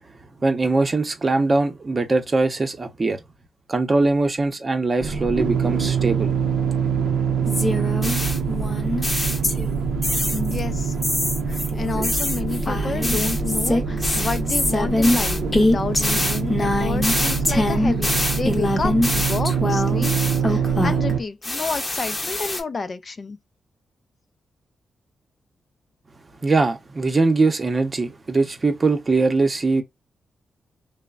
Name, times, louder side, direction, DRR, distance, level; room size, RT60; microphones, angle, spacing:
voice 1, 0.4-3.2 3.7-6.4 26.4-29.8, right 3 dB, 35° right, 0.7 m, -21 dB
sound 1, 5.0-21.2, right 6 dB, 85° right, 0.5 m, -24 dB
sound 2, 7.5-9.8 10.0-10.6 11.0-21.1 21.4-22.6, left 1 dB, 25° left, 0.7 m, -23 dB
voice 2, 10.3-11.0 11.5-23.4, left 4 dB, 45° left, 0.3 m, -30 dB
3.1 x 2.0 x 2.3 m
cardioid pair, 80°, 0 cm